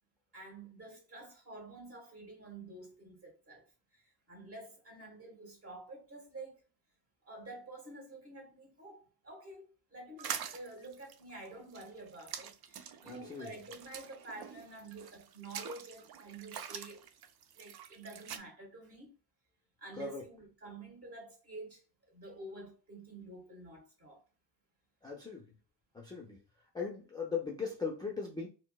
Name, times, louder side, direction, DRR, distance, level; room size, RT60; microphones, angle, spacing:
voice 1, 0.3-3.6 3.9-6.6 7.2-17.1 17.5-19.1 19.8-24.2, right 2 dB, 30° right, 1.5 m, -49 dB
sound 1, 10.2-18.4, right 8 dB, 60° right, 0.5 m, -45 dB
voice 2, 13.1-13.5 20.0-20.2 25.0-25.5 25.9-26.4 26.7-28.5, left 5 dB, 10° left, 0.4 m, -38 dB
4.3 x 2.0 x 2.3 m
cardioid pair, 130°, 43 cm